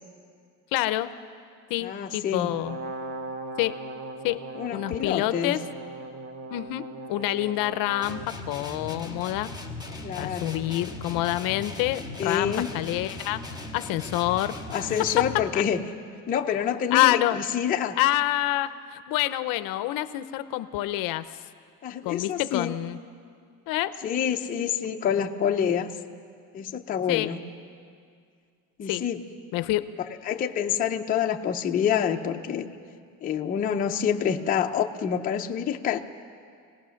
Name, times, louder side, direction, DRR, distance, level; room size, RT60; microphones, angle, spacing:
voice 1, 0.7-1.1 1.7-2.8 3.6-3.8 4.2-4.4 4.7-5.6 6.5-9.5 10.2-13.4 13.7-14.6 15.2-15.3 15.5-15.6 16.9-17.4 18.0-21.4 22.0-23.0 23.7-24.0 27.1-27.3 28.9-29.0 29.5-29.9, left 15 dB, 60° left, 12 dB, 0.7 m, -27 dB
voice 2, 1.8-2.5 4.5-5.6 10.0-10.7 12.2-12.7 14.7-15.8 16.3-18.0 21.8-22.8 24.0-25.9 26.5-27.4 28.8-29.2 30.2-32.7 33.2-36.0, left 8 dB, 20° left, 2 dB, 0.6 m, -27 dB
Brass instrument, 2.5-8.3, right 2 dB, 30° right, 1.1 m, -38 dB
sound 1, 8.0-15.5, left 2 dB, 10° right, 1.6 m, -38 dB
26.0 x 18.5 x 6.4 m, 2.2 s
cardioid pair, 180°, 38 cm